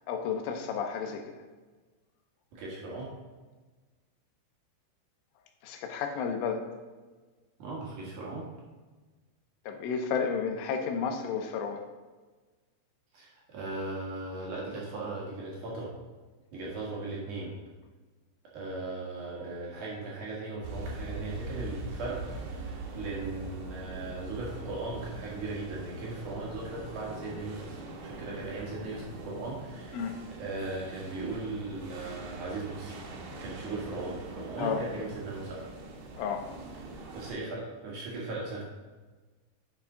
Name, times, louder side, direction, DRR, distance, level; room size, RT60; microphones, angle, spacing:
voice 1, 0.1-1.4 5.6-6.7 9.7-11.9 29.9-30.2 34.6-34.8 36.2-36.5, left 6 dB, 80° left, 5 dB, 3.3 m, -32 dB
voice 2, 2.5-3.1 7.6-8.5 13.1-15.9 16.5-17.6 18.5-30.0 30.4-33.0 33.4-35.6 36.9-38.6, right 2 dB, 60° right, -4 dB, 2.3 m, -38 dB
sound 1, 20.6-37.3, right 2 dB, 75° right, 3.8 m, -42 dB
10.0 x 5.9 x 3.8 m, 1.3 s
omnidirectional pair, 5.6 m